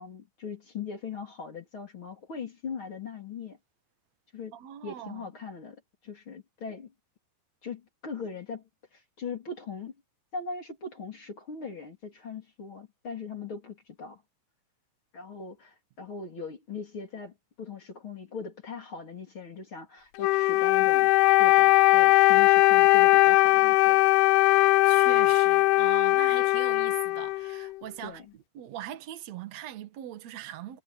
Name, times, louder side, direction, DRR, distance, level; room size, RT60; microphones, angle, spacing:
voice 1, 0.0-3.6 4.3-4.5 4.8-6.9 7.6-8.6 8.9-9.9 10.3-14.2 15.1-21.1 21.4-24.0 28.0-28.3, left 5 dB, 30° left, 3.7 m, -40 dB
voice 2, 4.5-5.3 24.9-30.8, right 12 dB, 70° right, 1.6 m, -41 dB
Wind instrument woodwind instrument, 20.2-27.8, left 20 dB, 85° left, 2.3 m, -20 dB
omnidirectional pair, 5.2 m